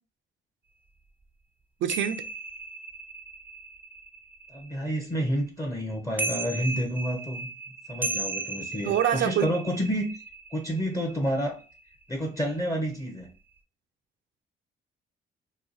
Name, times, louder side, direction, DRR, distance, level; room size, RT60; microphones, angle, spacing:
voice 1, 1.8-2.3 8.8-9.6, right 9 dB, 80° right, 0.4 m, -25 dB
sound 1, 1.9-5.4 5.9-11.9 12.2-12.6, right 3 dB, 10° right, 0.4 m, -36 dB
voice 2, 4.5-7.5 7.9-10.2 10.5-11.6 12.1-13.3, equal, 15° left, 0.7 m, -29 dB
2.9 x 2.3 x 3.9 m
cardioid pair, 105°, 19 cm